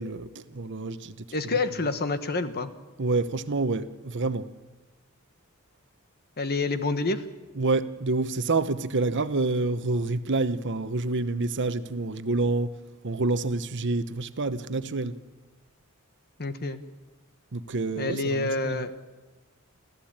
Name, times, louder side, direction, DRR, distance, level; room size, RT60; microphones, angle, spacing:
voice 1, 0.0-1.3 3.0-4.5 7.6-12.8 13.0-15.2 17.5-18.9, right 3 dB, 55° right, 0.9 m, -28 dB
voice 2, 1.3-2.7 6.4-7.2 16.4-16.8 18.0-18.9, left 3 dB, 45° left, 1.3 m, -28 dB
26.5 x 15.0 x 8.8 m
head